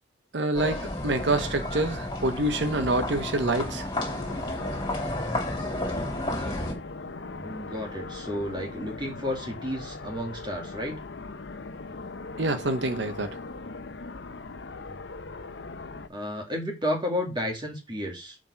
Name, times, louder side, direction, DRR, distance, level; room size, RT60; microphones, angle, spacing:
voice 1, 0.3-3.8 12.4-13.4, right 2 dB, 80° right, 1.1 m, -26 dB
sound 1, 0.5-6.7, left 1 dB, 25° left, 3.0 m, -32 dB
sound 2, 4.1-16.1, left 3 dB, 75° left, 0.8 m, -40 dB
voice 2, 7.3-11.0 14.8-15.0 16.1-18.4, left 1 dB, 25° right, 2.3 m, -32 dB
7.3 x 5.2 x 5.8 m
head